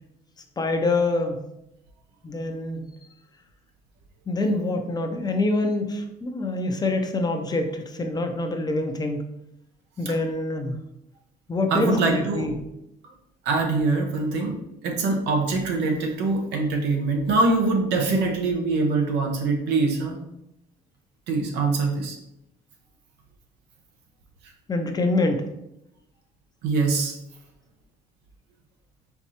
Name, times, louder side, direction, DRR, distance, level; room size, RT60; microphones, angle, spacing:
voice 1, 0.6-1.4 2.2-2.9 4.3-9.3 10.0-10.8 11.5-12.5 24.7-25.5, left 2 dB, 25° left, 5 dB, 0.6 m, -25 dB
voice 2, 11.7-12.5 13.4-14.6 14.8-20.2 21.3-22.2 26.6-27.1, right 3 dB, 85° right, 1 dB, 1.0 m, -23 dB
4.5 x 3.7 x 2.8 m, 0.84 s
cardioid pair, 110°, 17 cm